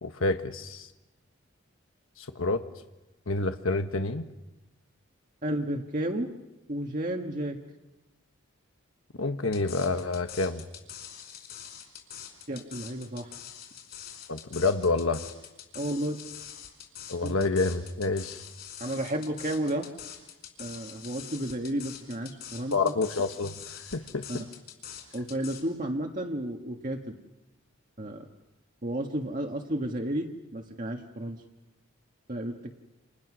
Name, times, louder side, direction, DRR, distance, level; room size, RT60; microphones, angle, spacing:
voice 1, 0.0-0.9 2.2-2.6 3.3-4.2 9.2-10.6 14.3-15.2 17.1-18.4 22.7-24.4, left 3 dB, 75° left, 7 dB, 1.3 m, -28 dB
voice 2, 5.4-6.3 6.7-7.6 12.5-13.4 15.7-16.2 17.2-17.3 18.8-19.9 20.6-22.9 24.3-24.5 25.1-27.2 28.0-28.3 28.8-31.4 32.3-32.7, right 1 dB, 40° right, 2 dB, 1.6 m, -32 dB
sound 1, 9.5-25.6, left 9 dB, 45° left, 5.1 m, -44 dB
29.0 x 28.0 x 6.3 m, 1.1 s
head